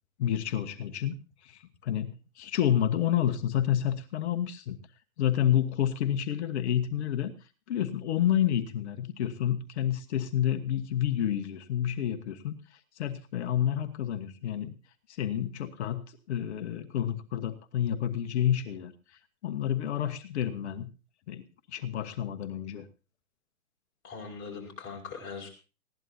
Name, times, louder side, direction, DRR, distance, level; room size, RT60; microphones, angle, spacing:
voice 1, 0.2-2.1 2.4-4.8 5.2-7.3 7.7-14.7 15.1-18.9 19.4-20.9 21.3-22.9, left 10 dB, 45° left, 9 dB, 1.3 m, -29 dB
voice 2, 24.0-25.5, left 5 dB, 25° left, 0 dB, 5.4 m, -40 dB
20.0 x 16.5 x 2.8 m, 0.33 s
hypercardioid pair, 135°, 45 cm